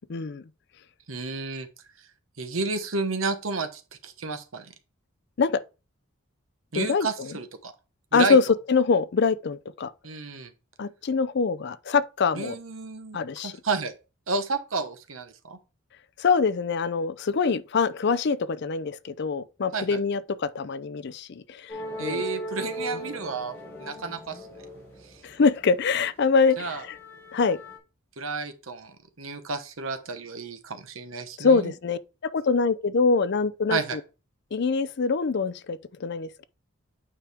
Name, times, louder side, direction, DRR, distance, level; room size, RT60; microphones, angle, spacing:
voice 1, 0.1-0.4 5.4-5.6 6.8-7.3 8.1-8.4 8.7-9.9 10.8-12.5 13.1-13.5 16.2-22.2 25.2-27.0 27.3-27.6 31.4-32.0 32.3-33.8 34.5-36.4, left 5 dB, 55° left, 0.5 m, -24 dB
voice 2, 1.1-1.7 2.4-4.7 6.7-7.7 8.1-8.4 10.0-10.5 12.3-13.9 14.3-15.6 19.7-20.0 22.0-24.5 25.0-25.2 26.6-26.8 28.2-31.7 33.7-34.0, right 4 dB, 80° right, 1.1 m, -31 dB
sound 1, 21.7-25.8 26.2-27.8, equal, 10° left, 3.5 m, -38 dB
8.8 x 5.0 x 3.4 m
head